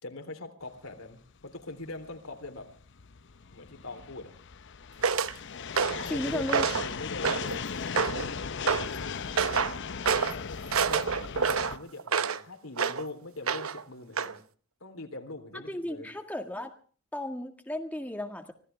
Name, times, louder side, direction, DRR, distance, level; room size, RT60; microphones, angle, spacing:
voice 1, 0.0-2.7 3.5-4.3 5.9-6.6 6.8-9.3 10.3-14.4 14.8-16.1, left 2 dB, 80° left, 5 dB, 3.6 m, -42 dB
sound 1, 0.8-11.8, left 6 dB, 60° left, 0.7 m, -38 dB
sound 2, 5.0-5.3 5.8-6.1 6.5-6.9 7.2-7.6 8.0-8.3 8.7-8.9 9.4-9.7 10.0-10.4 10.7-12.4 12.8-13.0 13.5-13.8 14.2-14.3, right 6 dB, 85° right, 1.0 m, -27 dB
voice 2, 6.1-6.7 15.5-16.7 17.1-18.5, left 1 dB, 10° left, 4 dB, 1.8 m, -34 dB
25.5 x 16.5 x 3.4 m, 0.41 s
head